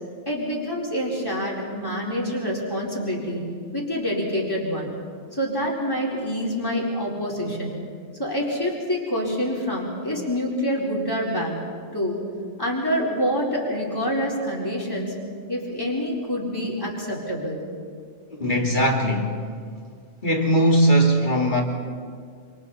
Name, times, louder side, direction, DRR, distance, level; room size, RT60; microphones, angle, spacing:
voice 1, 0.3-3.4 3.7-4.9 5.3-7.8 8.2-11.6 11.9-12.2 12.6-15.1 15.5-17.6, equal, 20° left, -3 dB, 4.4 m, -26 dB
voice 2, 18.4-19.4 20.2-21.6, equal, 40° left, 0 dB, 2.8 m, -19 dB
27.5 x 27.0 x 4.3 m, 2.1 s
omnidirectional pair, 1.2 m